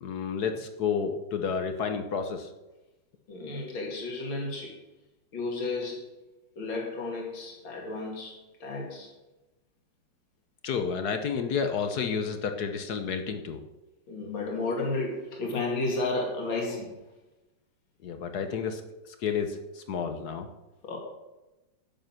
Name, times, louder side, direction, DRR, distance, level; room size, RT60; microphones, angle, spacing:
voice 1, 0.0-2.5 10.6-13.6 18.0-18.8 19.1-20.5, left 6 dB, 60° left, 7 dB, 1.3 m, -30 dB
voice 2, 3.3-4.8 5.3-6.1 6.6-9.1 14.1-17.0 20.8-21.0, left 3 dB, 80° left, -1 dB, 3.0 m, -32 dB
10.5 x 7.8 x 6.0 m, 1.0 s
omnidirectional pair, 2.1 m